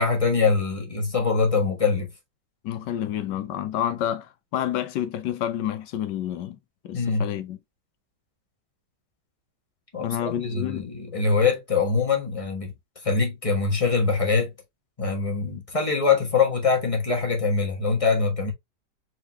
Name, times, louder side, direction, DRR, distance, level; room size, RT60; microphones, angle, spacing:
voice 1, 0.0-2.1 6.9-7.3 9.9-12.7 13.0-14.5 15.0-18.5, left 4 dB, 20° left, 1.3 m, -23 dB
voice 2, 2.6-6.6 6.8-7.6 10.0-10.9, left 11 dB, 85° left, 1.3 m, -29 dB
4.6 x 3.5 x 2.9 m
omnidirectional pair, 1.8 m